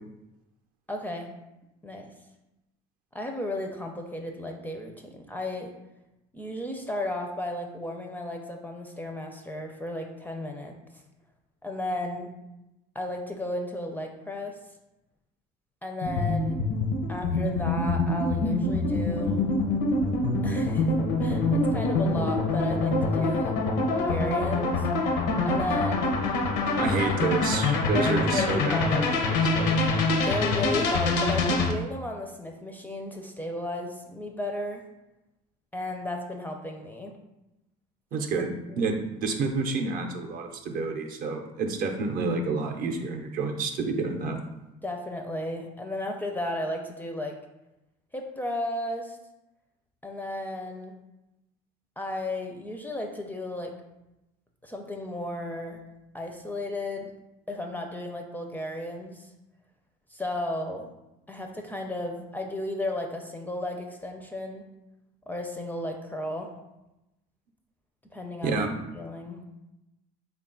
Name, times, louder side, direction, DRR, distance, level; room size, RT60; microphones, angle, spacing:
voice 1, 0.9-1.3 1.8-2.1 3.1-5.7 6.3-10.7 11.6-12.3 12.9-14.6 15.8-16.6 17.1-19.4 20.4-23.6 23.9-24.9 25.4-26.2 27.9-29.2 30.2-34.8 35.7-37.1 38.7-38.9 44.8-47.4 48.1-49.2 50.0-50.9 52.0-53.7 54.6-55.8 56.1-57.1 57.5-59.2 60.1-60.9 61.3-64.6 65.3-66.5 68.1-68.6 68.9-69.4, left 1 dB, 10° left, 2 dB, 0.4 m, -34 dB
sound 1, 16.0-31.7, left 2 dB, 70° left, 0.6 m, -25 dB
voice 2, 26.8-29.8 38.1-44.4 68.4-68.7, right 4 dB, 55° right, 4 dB, 0.6 m, -29 dB
3.7 x 2.3 x 3.7 m, 0.95 s
supercardioid pair, 100°, 18 cm